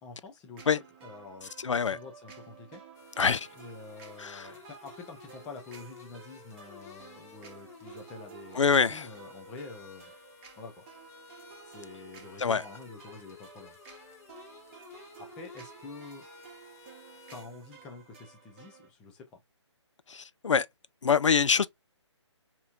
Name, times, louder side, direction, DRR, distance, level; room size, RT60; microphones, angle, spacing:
voice 1, 0.0-2.8 3.6-10.1 10.6-10.8 11.7-13.8 15.2-16.3 17.3-19.4, left 4 dB, 5° left, 0.3 m, -47 dB
sound 1, 0.5-18.9, right 6 dB, 20° right, 1.0 m, -52 dB
voice 2, 1.6-2.0 3.2-3.5 4.2-4.5 8.6-9.1 12.4-12.6 20.1-20.7 21.0-21.7, left 6 dB, 85° left, 0.4 m, -25 dB
sound 2, 2.9-17.4, left 5 dB, 30° left, 1.1 m, -53 dB
4.1 x 2.9 x 2.4 m
figure-of-eight pair, 150°, 15 cm